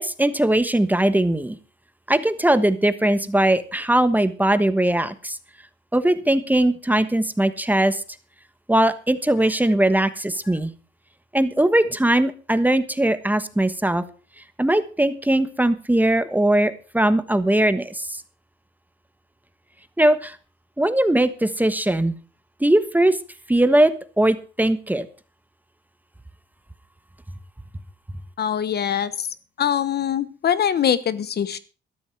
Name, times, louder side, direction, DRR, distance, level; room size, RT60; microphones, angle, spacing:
voice 1, 0.0-1.6 2.1-5.4 5.9-8.0 8.7-10.7 11.3-14.0 14.6-18.2 20.0-20.4 20.8-22.1 22.6-23.2 23.5-25.1, right 1 dB, 10° right, 12 dB, 1.2 m, -20 dB
voice 2, 28.4-29.3 29.6-31.6, left 9 dB, 55° left, 15 dB, 1.1 m, -23 dB
13.0 x 12.5 x 4.6 m, 0.36 s
cardioid pair, 90°, 20 cm